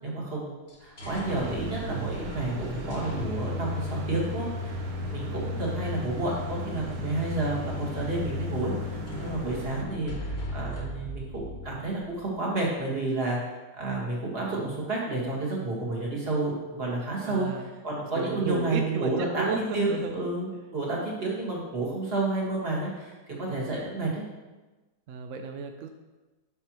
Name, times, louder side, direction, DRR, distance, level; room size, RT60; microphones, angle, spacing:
voice 1, 0.0-13.4 13.8-24.2, right 2 dB, 35° right, -4 dB, 1.8 m, -30 dB
sound 1, 0.7-12.3, left 2 dB, 40° left, 1.2 m, -35 dB
sound 2, 1.2-9.8, right 4 dB, 60° right, 1.1 m, -41 dB
voice 2, 17.2-17.6 18.1-20.2 23.5-23.6 25.1-25.9, right 5 dB, 80° right, 5 dB, 0.7 m, -33 dB
9.8 x 5.5 x 3.0 m, 1.2 s
omnidirectional pair, 1.9 m